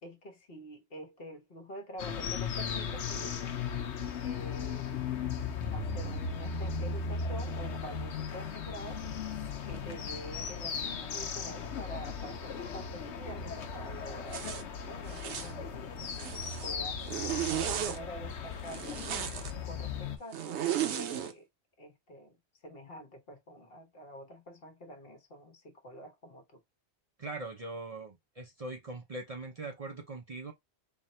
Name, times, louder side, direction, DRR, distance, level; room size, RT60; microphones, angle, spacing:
voice 1, 0.0-3.6 4.2-5.0 5.7-9.0 9.6-14.4 14.8-15.9 16.6-19.0 19.6-21.5 21.8-22.4 22.6-26.6, equal, 60° left, 1.4 m, -47 dB
sound 1, 2.0-20.2, left 5 dB, 90° left, 1.1 m, -37 dB
Zipper (clothing), 14.3-14.6 15.1-15.5 16.0-16.7 17.1-18.0 18.6-19.5 20.3-21.3, right 10 dB, 85° right, 0.9 m, -35 dB
voice 2, 27.2-30.5, right 2 dB, 40° right, 0.7 m, -41 dB
3.6 x 2.4 x 4.2 m
omnidirectional pair, 1.1 m